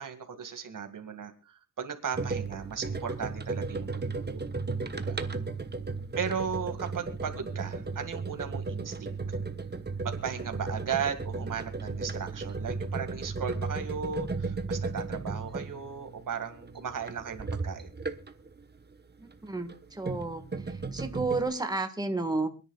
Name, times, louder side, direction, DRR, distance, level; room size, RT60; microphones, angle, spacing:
voice 1, 0.0-4.5 4.9-5.2 6.2-9.4 10.0-17.9, right 7 dB, 75° right, 7 dB, 2.2 m, -36 dB
sound 1, 2.1-18.5 19.6-21.5, right 3 dB, 30° right, 1.2 m, -35 dB
voice 2, 19.2-22.5, right 3 dB, 10° right, 6 dB, 1.7 m, -32 dB
27.0 x 10.0 x 2.4 m, 0.33 s
wide cardioid pair, 90°, 32 cm